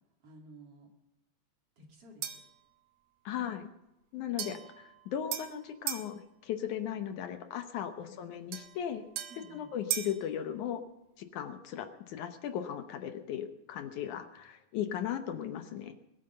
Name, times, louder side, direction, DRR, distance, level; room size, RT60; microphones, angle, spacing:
voice 1, 0.2-0.9 1.8-2.4 4.1-4.6 8.0-8.3 9.3-9.7, equal, 45° right, 1 dB, 3.2 m, -54 dB
sound 1, 2.2-2.6 4.4-6.1 8.5-10.2, right 11 dB, 65° right, 2.2 m, -38 dB
voice 2, 3.3-3.7 4.1-4.6 5.1-9.0 9.5-10.8 11.2-15.9, left 9 dB, 70° left, 7 dB, 2.3 m, -37 dB
21.5 x 9.4 x 6.7 m, 0.91 s
omnidirectional pair, 3.8 m